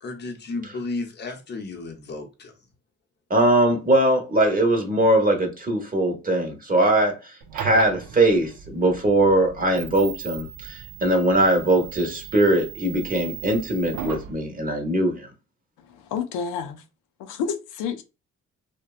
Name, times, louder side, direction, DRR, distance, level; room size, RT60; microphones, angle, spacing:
voice 1, 0.0-2.5, left 3 dB, 35° left, 0.7 m, -33 dB
voice 2, 3.3-15.3, right 1 dB, 30° right, 0.9 m, -21 dB
sound 1, 7.4-14.3, right 9 dB, 85° right, 0.5 m, -37 dB
voice 3, 16.1-16.8 17.2-18.0, left 6 dB, 90° left, 0.5 m, -29 dB
2.8 x 2.1 x 2.3 m
cardioid pair, 90°, 30 cm